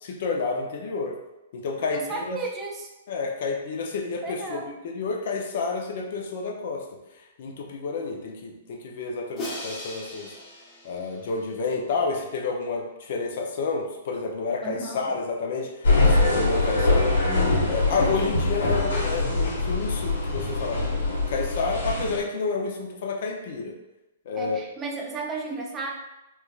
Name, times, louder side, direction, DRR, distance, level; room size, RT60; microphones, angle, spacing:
voice 1, 0.0-1.2 1.5-2.4 3.1-6.8 7.4-10.3 10.8-15.7 16.0-17.1 17.7-23.7 24.3-24.6, left 4 dB, 60° left, 1 dB, 0.6 m, -30 dB
voice 2, 1.9-2.9 4.2-4.7 14.6-15.1 24.4-25.9, right 3 dB, 20° right, 0 dB, 0.5 m, -33 dB
Crash cymbal, 9.4-11.6, left 1 dB, 30° left, 1.2 m, -38 dB
sound 1, 15.8-22.2, left 2 dB, 85° left, 1.2 m, -23 dB
3.3 x 3.1 x 2.4 m, 0.96 s
hypercardioid pair, 135°, 0 cm